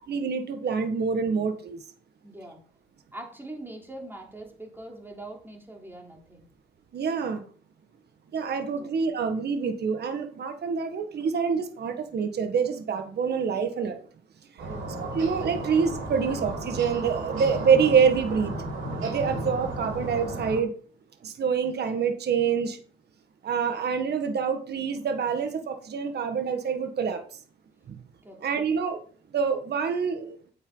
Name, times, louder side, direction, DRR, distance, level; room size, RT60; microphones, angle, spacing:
voice 1, 0.1-1.8 6.9-7.4 8.3-14.0 15.0-18.5 19.0-20.7 21.2-22.8 23.4-27.2 27.9-28.0 28.4-29.0 29.3-30.4, right 6 dB, 55° right, 7 dB, 1.6 m, -26 dB
voice 2, 2.2-2.6 3.1-6.5 8.8-8.9 14.6-15.0 28.2-28.5, right 1 dB, 10° right, 0 dB, 3.5 m, -43 dB
sound 1, 14.6-20.6, right 2 dB, 85° right, 5.4 m, -34 dB
8.6 x 8.2 x 3.9 m, 0.43 s
cardioid pair, 90°, 20 cm